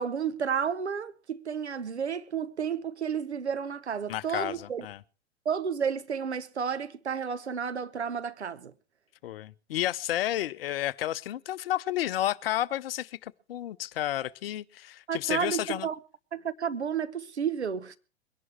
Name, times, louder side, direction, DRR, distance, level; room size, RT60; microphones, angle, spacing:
voice 1, 0.0-4.9 5.4-8.7 15.1-16.0 16.3-18.0, right 7 dB, 85° right, 1.0 m, -31 dB
voice 2, 4.1-5.0 9.2-15.9, left 13 dB, 60° left, 0.7 m, -31 dB
22.5 x 11.0 x 4.6 m
figure-of-eight pair, 95°, 33 cm